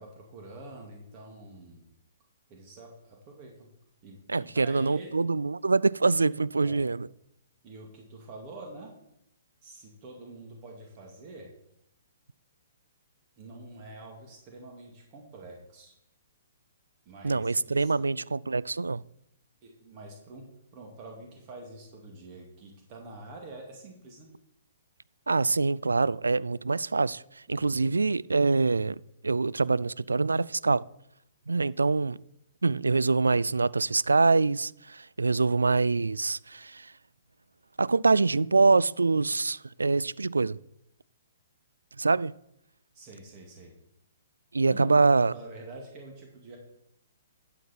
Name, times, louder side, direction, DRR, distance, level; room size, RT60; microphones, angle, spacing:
voice 1, 0.0-1.9 2.5-3.7 4.0-5.2 6.5-6.9 7.6-8.9 9.6-11.5 13.4-15.9 17.0-18.0 19.6-24.3 27.5-27.8 42.9-43.7 44.6-46.6, right 2 dB, 35° right, 2.4 m, -46 dB
voice 2, 4.3-7.1 17.2-19.0 25.3-30.8 31.5-32.2 32.6-36.9 37.8-40.6 42.0-42.3 44.5-45.3, right 3 dB, 80° right, 0.3 m, -25 dB
12.5 x 7.8 x 4.5 m
figure-of-eight pair, 120°, 0 cm